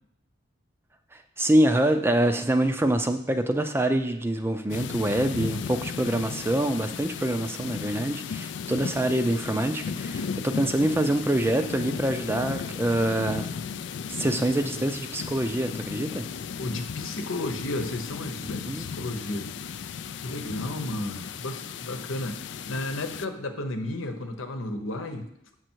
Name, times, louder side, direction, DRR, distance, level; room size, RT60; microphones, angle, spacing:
voice 1, 1.4-13.5 14.1-16.3 18.7-18.9, right 1 dB, 10° right, 7 dB, 0.4 m, -25 dB
sound 1, 4.7-23.3, left 6 dB, 60° left, 0.3 m, -35 dB
voice 2, 16.6-19.5 20.2-25.3, left 1 dB, 90° left, 6 dB, 1.0 m, -33 dB
7.6 x 6.3 x 4.6 m, 0.75 s
head